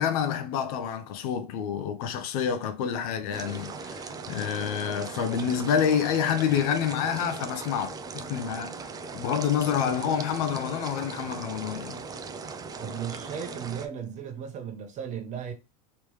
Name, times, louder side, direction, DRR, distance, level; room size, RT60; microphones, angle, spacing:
voice 1, 0.0-8.8 9.1-12.0, left 8 dB, 65° left, 0.7 m, -28 dB
sound 1, 3.3-13.9, right 4 dB, 20° right, 0.4 m, -39 dB
voice 2, 12.8-15.5, right 8 dB, 35° right, 1.0 m, -36 dB
3.3 x 3.1 x 3.1 m
hypercardioid pair, 105°, 20 cm